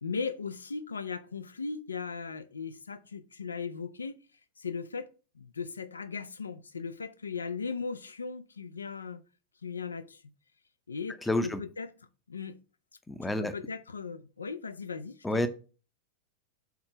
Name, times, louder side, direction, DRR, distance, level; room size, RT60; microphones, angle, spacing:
voice 1, 0.0-4.2 4.6-5.1 5.3-9.2 9.6-10.2 10.9-11.9 12.3-12.6 13.2-15.4, left 5 dB, 75° left, 0.6 m, -37 dB
voice 2, 11.2-11.6 13.1-13.5 15.2-15.5, left 1 dB, 10° left, 0.7 m, -29 dB
5.8 x 4.3 x 4.9 m
figure-of-eight pair, 90°, 0 cm